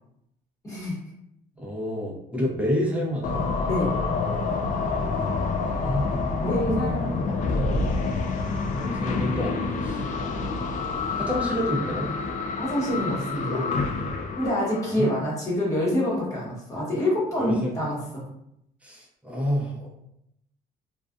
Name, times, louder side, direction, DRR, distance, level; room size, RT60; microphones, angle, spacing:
voice 1, 0.6-1.0 3.6-3.9 6.4-7.4 12.6-13.7 14.4-18.2, left 1 dB, 20° left, -6 dB, 1.1 m, -26 dB
voice 2, 1.6-3.4 5.8-6.1 8.7-10.0 11.1-12.1 14.9-15.1 17.4-17.8 18.8-19.9, left 1 dB, 10° right, -2 dB, 0.7 m, -28 dB
sound 1, 3.2-15.2, left 4 dB, 45° left, 0.4 m, -28 dB
2.3 x 2.3 x 2.4 m, 0.78 s
cardioid pair, 110°, 17 cm